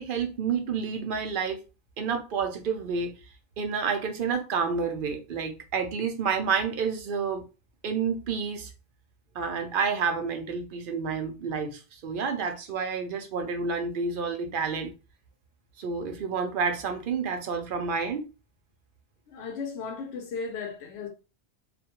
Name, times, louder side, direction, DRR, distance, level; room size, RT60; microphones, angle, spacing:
voice 1, 0.0-1.6 2.0-3.1 3.6-7.4 7.8-8.7 9.3-14.9 15.8-18.3, right 5 dB, 60° right, 0.7 m, -29 dB
voice 2, 19.3-21.1, left 5 dB, 80° left, 0.8 m, -35 dB
2.4 x 2.1 x 2.8 m
omnidirectional pair, 1.1 m